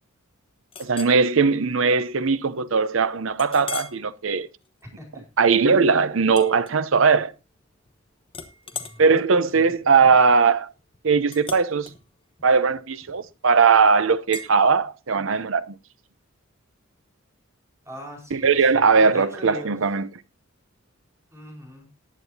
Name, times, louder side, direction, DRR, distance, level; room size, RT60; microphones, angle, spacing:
Chink clink, 0.7-1.2 1.7-1.9 2.4-2.5 3.4-4.0 4.5-4.8 6.3-7.2 7.6-8.0 8.3-13.4 14.3-14.5, left 5 dB, 25° left, 1.1 m, -39 dB
voice 1, 0.8-4.5 5.4-7.3 9.0-10.7 11.0-11.9 12.4-15.6 18.3-20.1, right 5 dB, 65° right, 0.7 m, -19 dB
voice 2, 4.8-5.2 8.7-9.1 9.5-10.1 17.8-19.8 21.3-21.9, equal, 15° right, 4.5 m, -41 dB
19.0 x 9.0 x 2.7 m
head